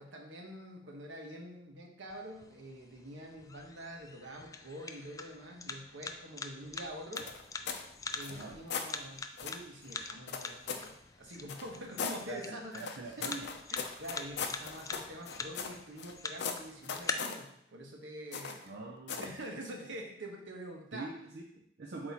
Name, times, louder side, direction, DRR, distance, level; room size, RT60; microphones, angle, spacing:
voice 1, 0.0-7.3 8.1-10.9 11.2-13.3 13.7-18.6 19.1-21.1, right 1 dB, 75° right, 0 dB, 1.3 m, -46 dB
sound 1, 2.1-17.1, left 4 dB, 20° left, 0.3 m, -45 dB
sound 2, 7.2-7.9 8.2-8.9 9.4-9.6 10.3-10.9 11.5-12.2 12.8-16.1 16.4-17.4 18.3-18.7 19.1-19.4, left 6 dB, 65° left, 0.6 m, -39 dB
voice 2, 8.3-8.6 12.3-13.5 18.6-19.3 20.9-22.1, right 3 dB, 60° right, -1 dB, 0.6 m, -44 dB
7.8 x 3.0 x 4.2 m, 0.74 s
head